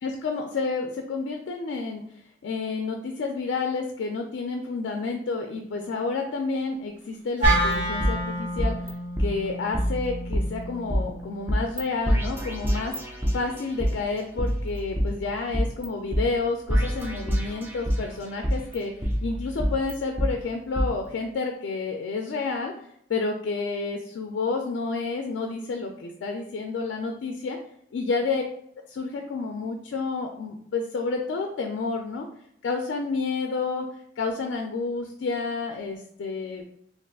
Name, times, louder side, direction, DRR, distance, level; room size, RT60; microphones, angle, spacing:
voice 1, 0.0-2.0 2.4-8.7 9.2-12.9 13.3-18.9 19.2-22.7 23.1-27.6 27.9-28.4 29.0-32.3 32.6-33.9 34.2-36.7, left 4 dB, 85° left, 3 dB, 0.3 m, -30 dB
sound 1, 7.4-8.9 9.2-9.3 9.7-11.0 11.5-11.8 12.1-13.9 14.4-15.9 16.1-16.2 16.7-18.1 18.4-20.3 20.8-20.9, equal, 10° right, 0.4 m, -26 dB
Wind instrument woodwind instrument, 7.4-11.7, right 1 dB, 45° right, 1.5 m, -29 dB
3.4 x 2.4 x 2.3 m, 0.73 s
head